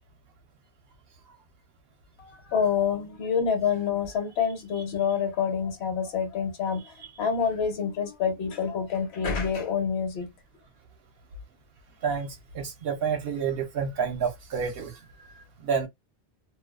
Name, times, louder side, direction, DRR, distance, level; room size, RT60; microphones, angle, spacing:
voice 1, 2.2-10.3, left 6 dB, 75° left, 1.0 m, -27 dB
voice 2, 12.0-15.9, right 6 dB, 65° right, 0.8 m, -30 dB
2.4 x 2.3 x 2.3 m
omnidirectional pair, 1.1 m